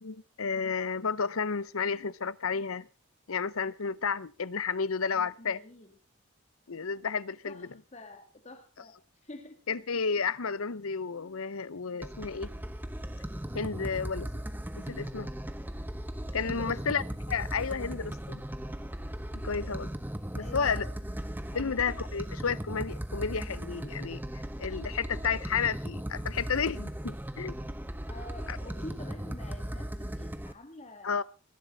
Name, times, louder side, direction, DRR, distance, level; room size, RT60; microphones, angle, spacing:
voice 1, 0.0-2.9 3.3-5.6 6.7-7.7 9.7-12.5 13.5-14.3 14.8-15.3 16.3-17.0 17.3-18.4 19.4-19.9 20.3-20.8 21.5-27.5 28.5-28.6 31.0-31.2, left 5 dB, 80° left, 0.8 m, -32 dB
voice 2, 5.1-5.9 7.4-9.0 9.2-9.6 16.4-17.0 20.4-20.9 21.5-21.8 28.1-31.2, left 1 dB, 30° left, 2.5 m, -47 dB
sound 1, 12.0-30.5, equal, 10° right, 0.9 m, -37 dB
21.0 x 12.0 x 4.0 m
head